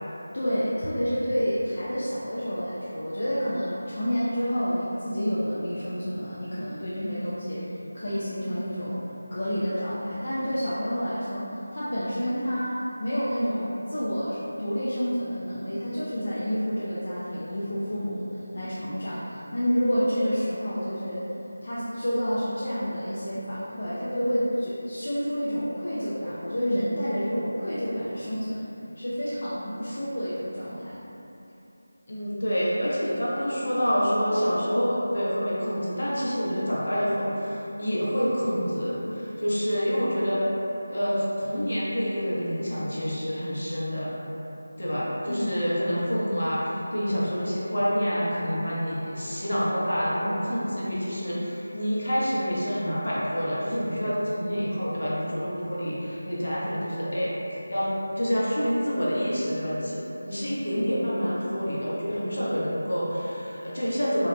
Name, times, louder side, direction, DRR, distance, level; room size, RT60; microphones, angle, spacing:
voice 1, 0.3-9.0 9.3-21.3 21.6-31.0 45.3-45.6, equal, 55° left, -10 dB, 0.4 m, -29 dB
voice 2, 32.1-40.4 40.9-44.2 44.8-57.3 57.7-64.3, equal, 70° left, -7 dB, 0.8 m, -27 dB
3.7 x 2.1 x 2.5 m, 3.0 s
figure-of-eight pair, 165°, 0 cm